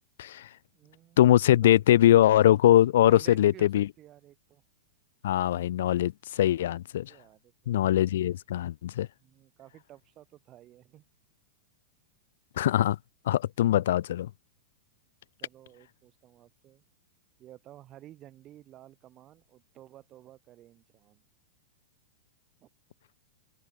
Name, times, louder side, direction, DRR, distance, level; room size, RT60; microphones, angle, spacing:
voice 1, 0.2-0.5 1.2-3.9 5.2-7.1 7.7-9.1 12.6-13.0 13.3-14.3, left 12 dB, 70° left, 0.4 m, -22 dB
voice 2, 0.7-1.8 2.9-4.6 7.0-8.0 9.2-11.0 15.4-16.8 17.4-21.2 22.6-22.7, right 13 dB, 35° right, 3.9 m, -53 dB
hypercardioid pair, 110°, 0 cm